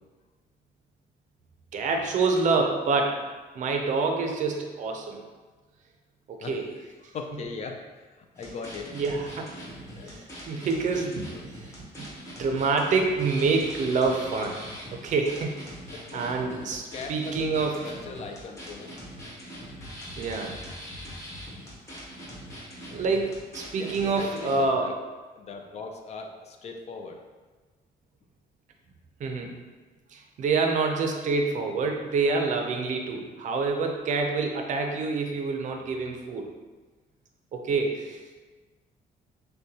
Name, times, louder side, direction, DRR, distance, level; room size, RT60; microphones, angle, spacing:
voice 1, 1.7-3.2 3.6-5.2 6.3-6.6 8.9-9.5 10.1-11.3 12.0-12.1 12.4-14.6 14.9-15.7 16.1-17.8 20.2-20.5 22.9-24.9 29.2-29.5 30.1-36.5 37.5-38.2, right 4 dB, 50° right, 3 dB, 0.5 m, -27 dB
voice 2, 7.0-7.8 8.1-9.0 10.0-10.3 11.3-11.5 15.9-16.4 16.9-18.9 23.8-24.9 25.3-27.2, left 4 dB, 40° left, 3 dB, 0.4 m, -39 dB
sound 1, 8.3-24.7, equal, 15° left, 1.0 m, -42 dB
6.4 x 2.2 x 2.8 m, 1.3 s
cardioid pair, 170°, 16 cm